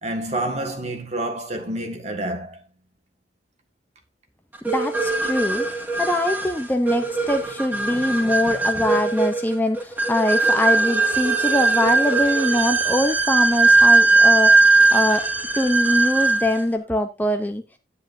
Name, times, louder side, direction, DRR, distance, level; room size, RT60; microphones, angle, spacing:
voice 1, 0.0-2.6, right 1 dB, 40° right, 1.7 m, -28 dB
voice 2, 4.6-5.7 6.0-15.3 15.6-17.6, left 1 dB, 10° left, 0.7 m, -23 dB
sound 1, 4.7-16.6, right 3 dB, 10° right, 1.9 m, -19 dB
10.0 x 9.9 x 2.6 m
head